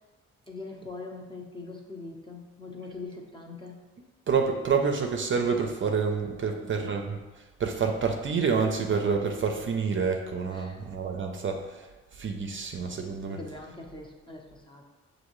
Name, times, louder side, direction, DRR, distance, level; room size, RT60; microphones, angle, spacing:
voice 1, 0.5-3.8 6.4-6.9 10.5-10.8 13.3-14.8, left 3 dB, 15° left, 0 dB, 0.7 m, -42 dB
voice 2, 4.3-7.2 7.6-11.9 12.1-13.4, right 5 dB, 40° right, 3 dB, 0.5 m, -28 dB
6.2 x 2.6 x 3.0 m, 1.2 s
cardioid pair, 70°, 30 cm